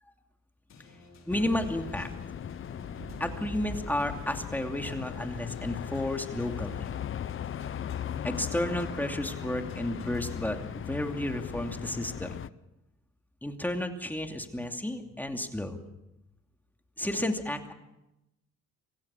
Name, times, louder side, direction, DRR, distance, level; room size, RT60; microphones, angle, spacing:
sound 1, 0.7-11.3, left 2 dB, 60° left, 4.7 m, -50 dB
sound 2, 1.3-12.5, left 9 dB, 45° left, 0.6 m, -38 dB
voice 1, 1.3-2.1 3.2-6.9 8.2-12.4 13.4-15.8 17.0-17.7, left 1 dB, 5° left, 5 dB, 2.6 m, -32 dB
sound 3, 3.0-6.9 7.4-7.5, right 3 dB, 30° right, 3.7 m, -46 dB
25.0 x 16.0 x 7.1 m, 0.91 s
cardioid pair, 90°, 30 cm